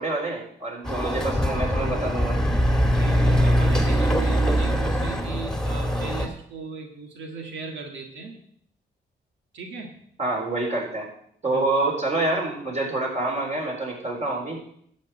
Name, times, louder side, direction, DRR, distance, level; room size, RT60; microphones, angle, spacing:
voice 1, 0.0-2.4 10.2-11.1 11.4-14.6, right 2 dB, 35° right, -1 dB, 4.3 m, -27 dB
Chatter / Car passing by / Motorcycle, 0.8-6.3, equal, 5° left, 1.9 m, -22 dB
voice 2, 2.9-8.4 9.5-10.0 11.5-11.6, right 4 dB, 90° right, 2 dB, 1.9 m, -37 dB
11.5 x 5.3 x 7.8 m, 0.66 s
cardioid pair, 75°, 19 cm